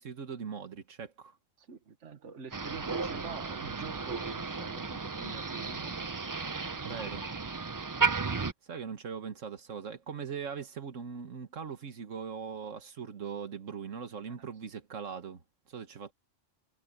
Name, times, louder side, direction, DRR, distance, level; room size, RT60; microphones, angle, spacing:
voice 1, 0.0-1.4 6.9-7.2 8.3-16.1, right 6 dB, 90° right, 1.8 m, -41 dB
voice 2, 1.6-6.2 6.7-6.9, right 6 dB, 70° right, 1.7 m, -46 dB
Motor vehicle (road), 2.5-8.5, right 4 dB, 30° right, 0.3 m, -34 dB
omnidirectional pair, 1.3 m